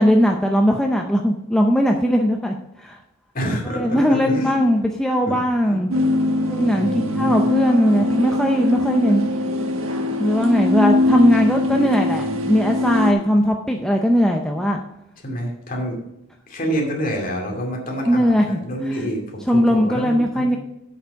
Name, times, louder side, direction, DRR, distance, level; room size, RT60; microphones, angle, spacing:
voice 1, 0.0-3.0 3.5-5.9 6.5-9.3 10.2-14.8 18.1-18.6 18.9-19.1 19.5-20.6, equal, 5° left, 1 dB, 0.5 m, -19 dB
voice 2, 3.3-4.6 5.2-5.4 5.6-5.8 6.8-7.5 15.2-16.0 16.5-20.5, equal, 40° left, 0 dB, 2.4 m, -27 dB
sound 1, 5.9-13.1, left 2 dB, 75° right, 1.3 m, -21 dB
8.1 x 7.1 x 5.2 m, 0.86 s
head